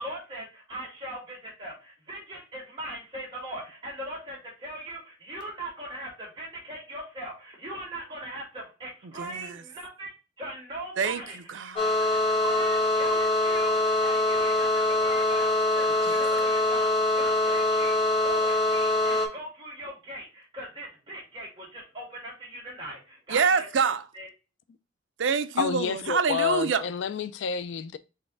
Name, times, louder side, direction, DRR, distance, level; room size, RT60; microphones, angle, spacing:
voice 1, 0.0-10.1 10.4-11.4 11.7-11.9 12.4-23.7 24.1-24.3, right 1 dB, 25° right, 1.9 m, -39 dB
voice 2, 9.0-9.6 11.0-11.9 16.1-16.2 23.3-24.1 25.2-26.9, right 5 dB, 75° right, 0.5 m, -27 dB
sound 1, 11.8-19.3, left 2 dB, 35° left, 1.8 m, -24 dB
voice 3, 25.6-28.0, left 7 dB, 70° left, 0.3 m, -29 dB
4.1 x 3.4 x 3.7 m
head